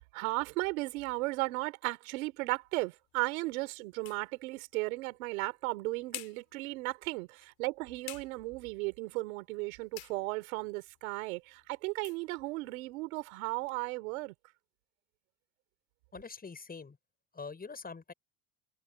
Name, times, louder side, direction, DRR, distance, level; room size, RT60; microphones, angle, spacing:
voice 1, 0.1-14.3, right 23 dB, 85° right, 4.1 m, -35 dB
sound 1, 2.3-13.8, left 20 dB, 70° left, 7.6 m, -54 dB
voice 2, 16.1-17.0 17.3-18.1, left 4 dB, 20° left, 7.0 m, -44 dB
supercardioid pair, 100°, 40 cm